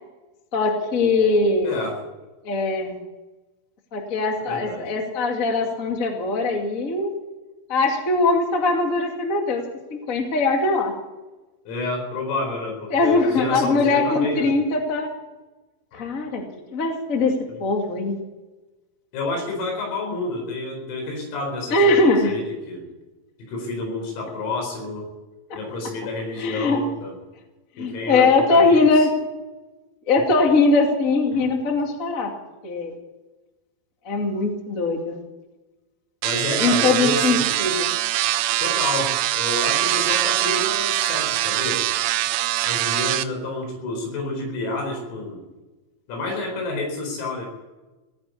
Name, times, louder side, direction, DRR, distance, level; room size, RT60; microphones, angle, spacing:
voice 1, 0.5-1.8 2.4-3.0 3.9-7.1 7.7-9.6 9.9-10.9 12.9-15.1 16.0-16.4 16.7-17.3 17.6-18.2 21.7-22.3 25.5-25.6 26.4-26.8 27.8-29.1 30.1-32.3 32.6-32.9 34.0-35.2 36.5-37.9, left 3 dB, 65° left, 2 dB, 0.8 m, -21 dB
voice 2, 1.6-2.0 4.5-4.9 11.7-14.6 15.9-16.1 17.5-17.6 19.1-22.9 23.4-25.1 25.6-27.1 27.8-29.1 31.3-31.5 36.2-37.6 38.6-41.9 42.7-45.4 46.1-47.5, left 2 dB, 85° left, 2 dB, 7.1 m, -29 dB
sound 1, 36.2-43.2, right 15 dB, 85° right, 3.4 m, -23 dB
17.5 x 9.4 x 8.5 m, 1.1 s
omnidirectional pair, 6.0 m